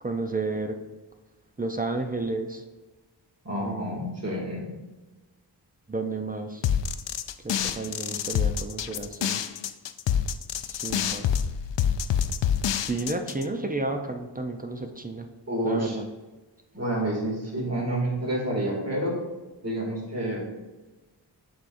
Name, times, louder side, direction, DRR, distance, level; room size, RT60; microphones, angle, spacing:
voice 1, 0.0-0.8 1.6-2.6 3.6-3.9 5.9-6.6 7.4-9.4 10.7-11.3 12.8-15.3 15.6-16.1, right 3 dB, 20° right, 5 dB, 0.5 m, -31 dB
voice 2, 3.4-4.7 15.5-16.0 16.7-19.2 19.6-20.4, right 1 dB, 35° right, -3 dB, 2.3 m, -29 dB
sound 1, 6.6-13.4, left 8 dB, 80° left, 0.5 m, -27 dB
8.1 x 6.0 x 2.6 m, 1.2 s
wide cardioid pair, 115°, 43 cm